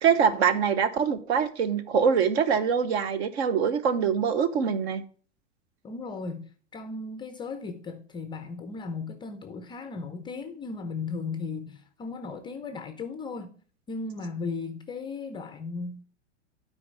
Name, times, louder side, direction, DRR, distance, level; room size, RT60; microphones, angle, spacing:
voice 1, 0.0-5.0, right 7 dB, 60° right, 1.0 m, -24 dB
voice 2, 5.8-13.5 13.9-16.0, left 4 dB, 15° left, 0.4 m, -36 dB
8.5 x 4.7 x 5.4 m
hypercardioid pair, 105°, 37 cm